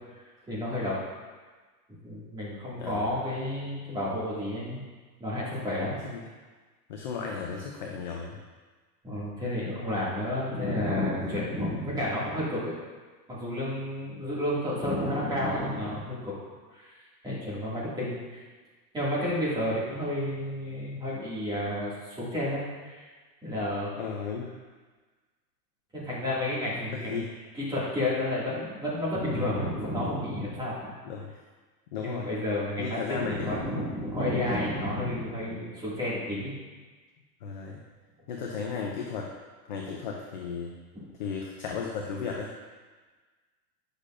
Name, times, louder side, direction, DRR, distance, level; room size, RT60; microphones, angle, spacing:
voice 1, 0.5-1.0 2.0-4.8 5.2-6.0 9.0-12.7 13.3-16.4 16.7-17.0 17.2-18.4 18.9-23.1 23.4-23.9 25.9-27.2 27.5-30.9 32.0-36.5 40.9-41.0, left 1 dB, 10° right, -8 dB, 2.0 m, -31 dB
voice 2, 2.8-3.1 5.6-5.8 6.0-6.2 6.9-8.4 11.2-11.4 24.0-24.5 26.9-27.2 31.0-31.3 31.9-32.3 32.8-33.6 37.4-37.8 38.3-39.3 39.7-40.7 41.2-42.5, left 5 dB, 30° left, 0 dB, 0.4 m, -35 dB
9.7 x 6.5 x 2.5 m, 1.4 s
supercardioid pair, 150°, 49 cm